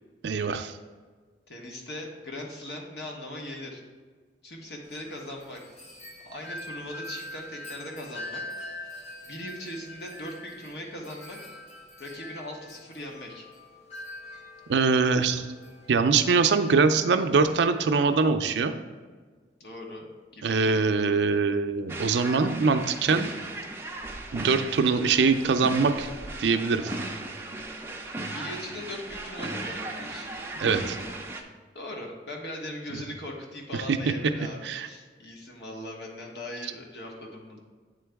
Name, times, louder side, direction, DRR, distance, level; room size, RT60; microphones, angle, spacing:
voice 1, 0.2-0.7 14.7-15.5 15.9-18.7 20.4-23.3 24.3-26.1 26.4-26.9 30.6-31.0 33.7-34.0 34.6-34.9, right 4 dB, 75° right, 9 dB, 0.4 m, -23 dB
voice 2, 1.5-3.8 4.4-5.6 6.2-8.4 9.2-11.4 12.0-13.5 19.6-20.1 20.3-21.1 28.3-30.3 31.7-37.6, left 1 dB, 65° left, 0 dB, 1.2 m, -39 dB
Wind chime, 4.8-18.2, left 1 dB, 40° left, 0.9 m, -44 dB
sound 1, 21.9-31.4, right 2 dB, 15° right, 0.4 m, -36 dB
8.6 x 3.8 x 3.4 m, 1.4 s
head